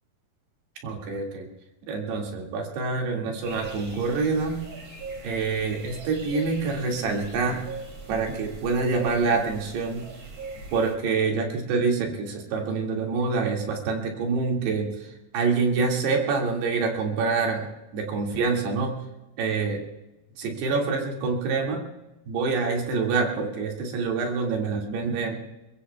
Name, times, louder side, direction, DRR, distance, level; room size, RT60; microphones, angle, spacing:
voice 1, 0.8-1.5 1.9-4.6 5.2-7.6 8.1-10.0 10.7-19.0 19.4-19.8 20.4-21.8 22.3-25.4, right 4 dB, 75° right, 1 dB, 4.3 m, -26 dB
sound 1, 3.4-10.9, right 3 dB, 40° right, 3.3 m, -41 dB
23.5 x 22.5 x 2.3 m, 1.0 s
omnidirectional pair, 4.8 m